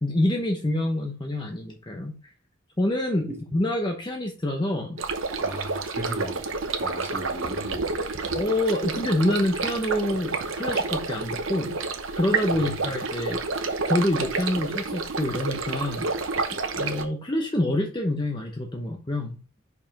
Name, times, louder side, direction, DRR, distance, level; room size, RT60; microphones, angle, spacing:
voice 1, 0.0-2.2 2.8-5.0 8.3-11.8 12.1-13.4 13.9-16.1 16.7-19.4, left 1 dB, 25° left, 2 dB, 0.9 m, -26 dB
sound 1, 5.0-17.0, right 4 dB, 80° right, 0.9 m, -29 dB
voice 2, 5.4-6.5 6.8-7.9, right 1 dB, 15° right, -2 dB, 2.3 m, -36 dB
5.5 x 5.0 x 5.2 m, 0.37 s
head